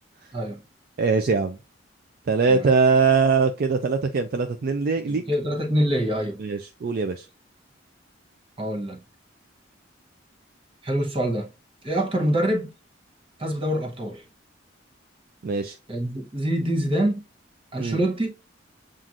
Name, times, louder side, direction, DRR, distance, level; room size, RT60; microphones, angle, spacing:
voice 1, 1.0-1.6 2.3-5.2 6.4-7.3 15.4-15.8 17.8-18.0, right 4 dB, 50° right, 0.4 m, -22 dB
voice 2, 5.1-6.4 8.6-9.0 10.8-11.5 11.8-12.7 13.4-14.2 15.9-17.2 17.7-18.3, equal, 30° right, 0.9 m, -25 dB
7.2 x 2.5 x 2.4 m
head